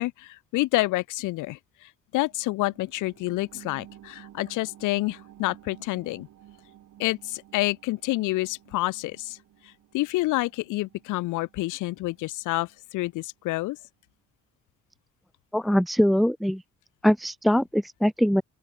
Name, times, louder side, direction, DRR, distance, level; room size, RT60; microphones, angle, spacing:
voice 1, 0.0-6.3 7.0-9.4 9.9-13.8, left 19 dB, 85° left, 0.6 m, -28 dB
sound 1, 2.1-13.2 13.6-13.7, right 12 dB, 75° right, 3.8 m, -53 dB
voice 2, 15.5-16.6 17.0-18.4, equal, ahead, 0.6 m, -22 dB
open air
cardioid pair, 90°, 30 cm